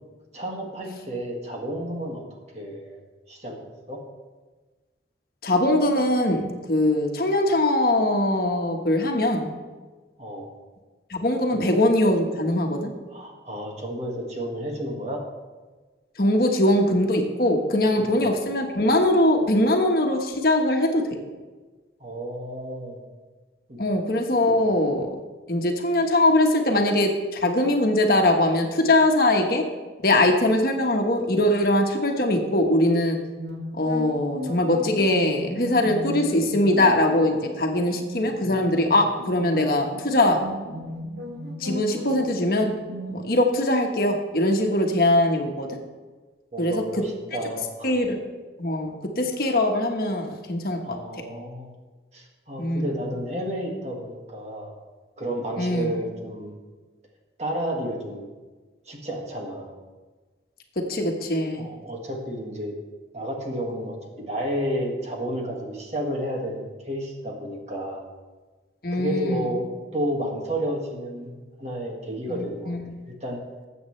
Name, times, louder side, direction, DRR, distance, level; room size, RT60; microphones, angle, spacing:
voice 1, 0.3-2.2 2.5-3.0 3.3-3.6 3.9-4.0 10.2-10.5 11.5-11.6 13.1-15.2 18.0-18.2 22.0-23.0 23.7-23.8 24.5-24.6 46.5-48.0 50.8-51.7 52.1-54.7 55.2-56.5 57.4-58.3 58.9-59.7 61.6-62.7 63.1-68.0 68.9-69.7 69.9-71.3 71.6-72.7 73.0-73.4, equal, 35° right, 0 dB, 1.8 m, -31 dB
voice 2, 5.4-9.5 11.1-12.9 16.2-21.0 23.8-25.1 25.5-29.6 30.0-33.2 33.8-40.4 41.6-42.7 43.1-45.8 46.6-46.8 47.8-48.2 48.6-51.0 52.6-52.9 55.6-55.9 60.8-61.7 68.8-69.4 72.7-72.8, left 1 dB, 55° left, 2 dB, 1.3 m, -22 dB
sound 1, 33.4-43.1, equal, 85° right, 2.1 m, -37 dB
19.5 x 8.1 x 3.2 m, 1.3 s
head